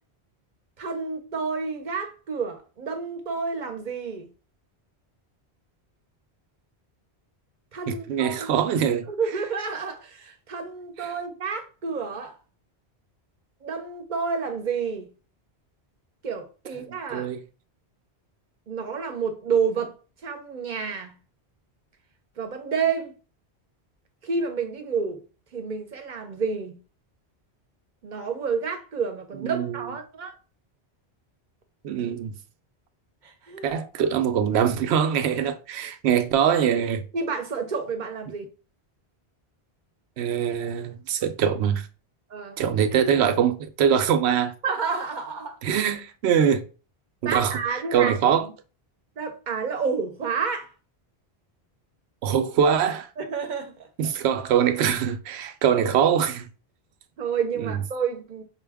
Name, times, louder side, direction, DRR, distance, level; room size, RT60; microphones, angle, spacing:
voice 1, 0.8-4.3 7.7-8.5 9.1-12.4 13.6-15.1 16.2-17.3 18.7-19.9 20.2-21.1 22.4-23.1 24.2-25.2 25.5-26.8 28.0-30.3 33.2-33.7 37.1-38.4 42.3-42.6 44.6-45.6 47.2-48.1 48.4-48.5 49.2-50.7 53.2-53.9 57.2-58.4, right 5 dB, 50° right, 0.8 m, -29 dB
voice 2, 7.9-9.1 11.0-11.1 17.1-17.4 29.4-29.8 31.8-32.3 33.6-37.0 40.2-41.8 42.6-44.5 45.6-46.6 47.2-47.6 47.9-48.5 52.2-53.1 54.0-56.5 57.6-57.8, right 8 dB, 75° right, 0.8 m, -23 dB
5.5 x 2.2 x 3.4 m
omnidirectional pair, 1.1 m